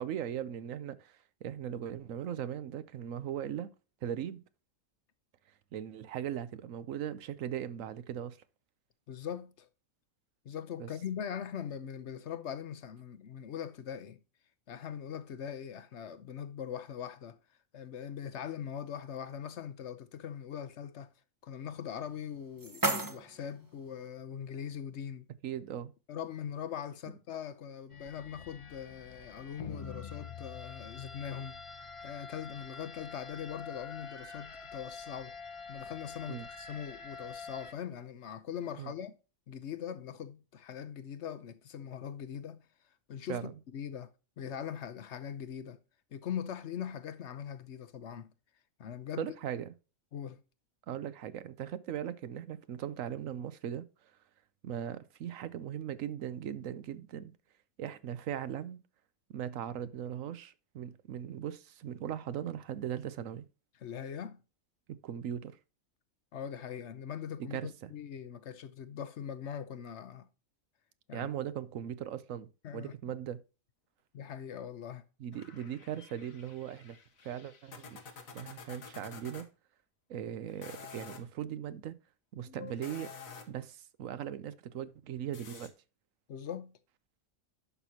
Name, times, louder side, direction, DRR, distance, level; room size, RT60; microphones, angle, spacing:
voice 1, 0.0-3.7 4.0-4.4 5.7-8.4 10.8-10.9 25.4-25.9 36.3-36.5 38.8-38.9 43.3-43.5 49.2-49.7 50.9-53.9 54.6-57.3 57.8-58.8 59.3-63.5 64.9-65.6 67.4-67.9 71.1-73.4 75.2-77.0 77.2-78.0 78.3-79.5 80.1-82.0 82.3-83.1 83.5-85.7, right 10 dB, 75° right, 1.1 m, -39 dB
voice 2, 9.1-9.7 10.4-14.2 14.7-17.4 17.7-21.1 21.4-25.3 26.1-35.3 35.7-39.1 39.5-42.6 43.1-44.1 44.4-45.8 46.1-48.3 48.8-49.3 50.1-50.4 63.8-64.4 66.3-70.3 71.1-71.3 72.6-72.9 74.1-75.0 82.5-82.7 86.3-86.7, left 8 dB, 60° left, 0.9 m, -41 dB
sound 1, 22.1-24.1, right 2 dB, 15° right, 0.9 m, -36 dB
sound 2, 27.9-37.7, left 5 dB, 30° left, 0.7 m, -46 dB
sound 3, 75.3-79.5 80.5-81.2 82.7-83.6 85.3-85.7, left 5 dB, 80° left, 1.5 m, -50 dB
11.0 x 6.1 x 2.8 m
omnidirectional pair, 1.4 m